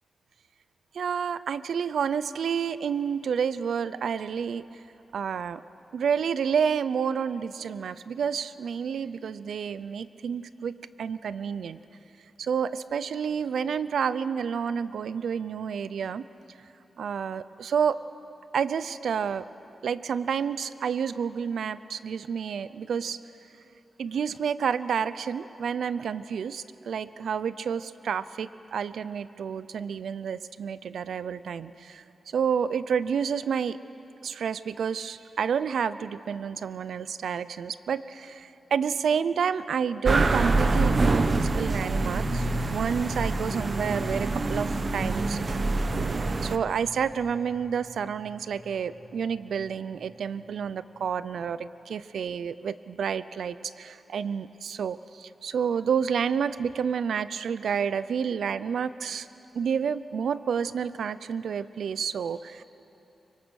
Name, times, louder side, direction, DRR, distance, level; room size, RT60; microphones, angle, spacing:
voice 1, 0.9-4.6 5.1-5.6 5.9-11.8 12.4-16.2 17.0-18.0 18.5-19.5 19.8-23.2 24.0-32.0 32.3-33.8 34.2-45.6 45.9-59.3 59.5-62.6, right 7 dB, 85° right, 15 dB, 0.5 m, -29 dB
sound 1, 40.0-46.6, right 3 dB, 40° right, 1.1 m, -26 dB
sound 2, 41.7-50.6 50.9-51.0, left 2 dB, 70° left, 3.1 m, -42 dB
24.0 x 24.0 x 6.4 m, 3.0 s
cardioid pair, 90°, 0 cm